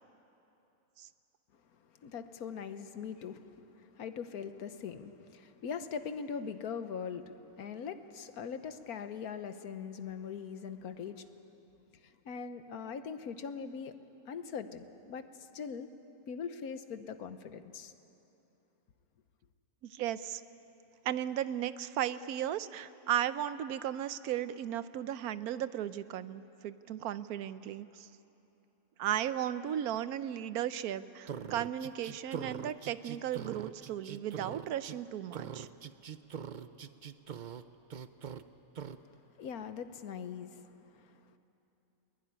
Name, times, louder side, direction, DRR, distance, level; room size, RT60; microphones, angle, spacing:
voice 1, 2.0-7.3 7.6-11.3 12.0-13.9 14.3-15.3 15.5-15.9 16.1-17.9 39.1-41.4, left 6 dB, 75° left, 10 dB, 1.5 m, -41 dB
voice 2, 19.8-20.4 21.0-28.1 29.0-35.7, right 11 dB, 80° right, 14 dB, 1.2 m, -35 dB
sound 1, 31.3-35.0 35.3-37.6 37.9-38.4 38.8-39.0, right 8 dB, 55° right, 0.5 m, -42 dB
21.5 x 20.0 x 9.9 m, 2.9 s
omnidirectional pair, 1.6 m